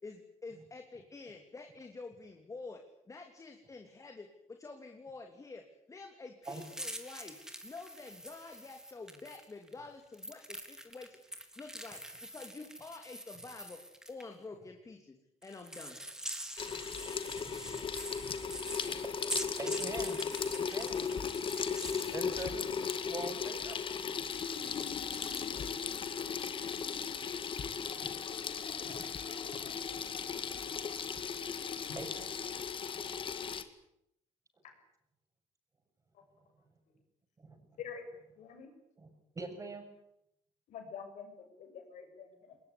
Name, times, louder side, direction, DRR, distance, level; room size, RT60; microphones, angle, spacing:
voice 1, 0.0-5.6 5.9-7.4 7.6-11.2 11.6-12.0 12.3-13.8 14.1-15.2 15.4-16.0, left 3 dB, 25° left, 4 dB, 3.1 m, -48 dB
sound 1, 6.4-9.7 10.1-14.2 15.4-23.2 23.5-25.7, right 1 dB, 5° right, 3.6 m, -45 dB
Water tap faucet / Sink (filling or washing), 16.6-33.6, left 6 dB, 45° left, 2.2 m, -37 dB
voice 2, 17.3-17.9 19.0-19.1 19.6-20.2 20.5-21.0 22.1-23.8 28.0-28.2 28.9-29.1 32.0-32.1 37.4-37.6 39.0-39.1 39.4-39.8, right 3 dB, 25° right, 6 dB, 7.0 m, -43 dB
voice 3, 38.4-38.7 40.7-42.6, left 7 dB, 75° left, 6 dB, 7.1 m, -47 dB
21.0 x 20.5 x 9.8 m, 0.79 s
cardioid pair, 105°, 13 cm